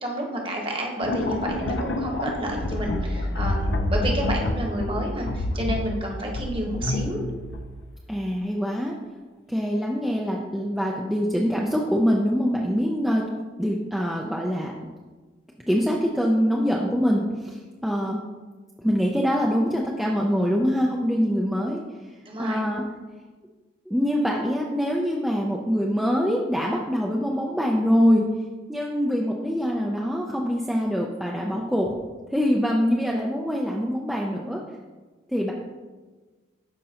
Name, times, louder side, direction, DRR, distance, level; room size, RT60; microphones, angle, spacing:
voice 1, 0.0-7.2 22.2-22.6, right 1 dB, 30° right, 0 dB, 1.2 m, -30 dB
sound 1, 1.0-7.9, left 1 dB, 70° left, 0.6 m, -28 dB
voice 2, 8.1-8.9 9.5-13.3 13.6-14.7 15.7-18.2 18.8-21.8 22.4-22.9 23.9-28.3 28.7-31.9 32.3-34.6 35.3-35.5, equal, ahead, -2 dB, 0.5 m, -24 dB
13.0 x 5.2 x 2.9 m, 1.3 s
head